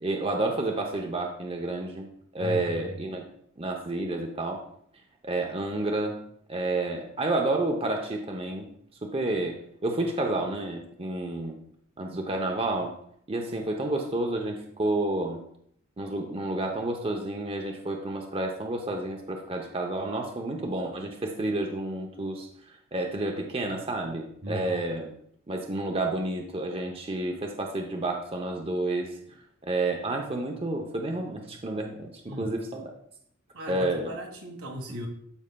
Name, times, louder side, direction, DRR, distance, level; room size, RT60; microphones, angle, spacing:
voice 1, 0.0-2.1 2.3-3.3 3.6-4.6 5.2-6.2 6.5-8.7 9.0-9.5 9.8-11.6 12.0-12.9 13.3-15.4 16.0-22.5 22.9-25.1 25.5-29.2 29.6-32.9 33.7-34.1, right 2 dB, 25° right, 2 dB, 0.7 m, -30 dB
voice 2, 2.4-2.9 24.4-24.9 32.3-32.5 33.5-35.1, left 1 dB, 80° right, 2 dB, 1.5 m, -37 dB
12.5 x 5.4 x 2.3 m, 0.67 s
head